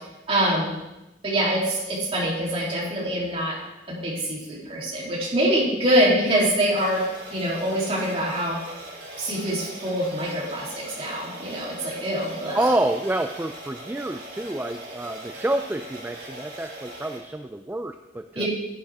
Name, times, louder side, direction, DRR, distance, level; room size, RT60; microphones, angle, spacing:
voice 1, 0.3-0.7 1.2-3.6 3.9-7.0 7.3-8.6 9.2-12.6 18.3-18.5, equal, 35° right, -5 dB, 3.2 m, -24 dB
sound 1, 6.7-17.2, right 1 dB, 90° right, 3.0 m, -41 dB
voice 2, 12.5-18.5, right 1 dB, 10° right, 6 dB, 0.3 m, -28 dB
10.5 x 9.7 x 3.5 m, 0.98 s
head